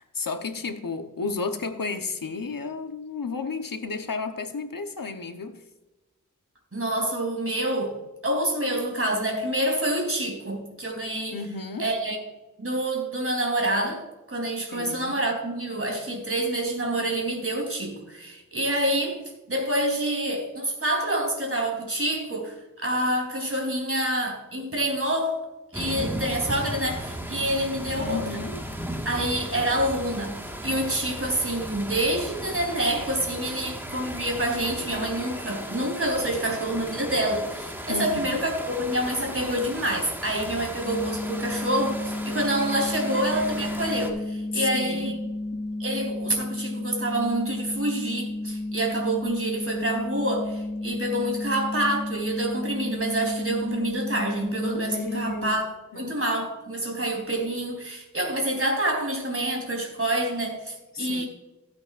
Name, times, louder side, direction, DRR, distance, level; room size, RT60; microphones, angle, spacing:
voice 1, 0.0-5.6 11.3-11.9 14.7-15.1 28.0-28.6 37.9-38.5 44.5-45.2 45.5-45.6 54.9-55.6 55.9-56.2 60.9-61.2, left 4 dB, 80° left, 7 dB, 1.1 m, -33 dB
voice 2, 6.7-8.0 8.2-11.4 11.8-12.2 12.6-14.0 14.3-19.2 19.5-25.4 25.7-28.2 29.1-45.2 45.8-55.7 56.0-61.3, right 1 dB, 40° right, 1 dB, 3.6 m, -27 dB
sound 1, 25.7-44.1, equal, 5° right, 1.7 m, -36 dB
sound 2, 40.8-55.5, left 2 dB, 25° left, 2.1 m, -32 dB
15.5 x 8.5 x 2.5 m, 1.1 s
wide cardioid pair, 55°, 33 cm